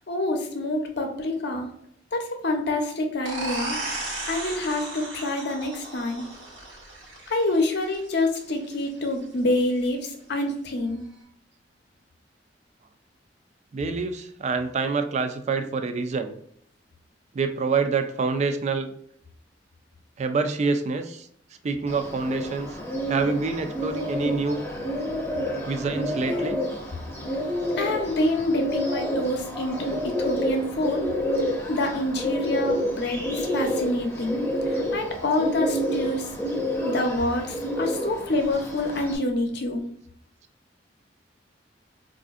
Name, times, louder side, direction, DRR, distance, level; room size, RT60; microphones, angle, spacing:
voice 1, 0.1-1.7 2.1-3.8 4.3-6.3 7.3-11.0 26.3-26.5 27.8-31.0 31.7-34.4 34.7-36.3 36.8-39.8, left 2 dB, 60° left, 4 dB, 0.6 m, -27 dB
sound 1, 3.2-8.6, right 2 dB, 75° right, 1.1 m, -35 dB
voice 2, 13.7-16.4 17.3-18.9 20.2-21.3 21.6-22.8 23.1-24.6 25.7-26.6, right 4 dB, 40° right, 9 dB, 0.3 m, -26 dB
Bird, 21.9-39.2, equal, 15° left, 0.6 m, -29 dB
4.2 x 2.5 x 2.4 m, 0.66 s
head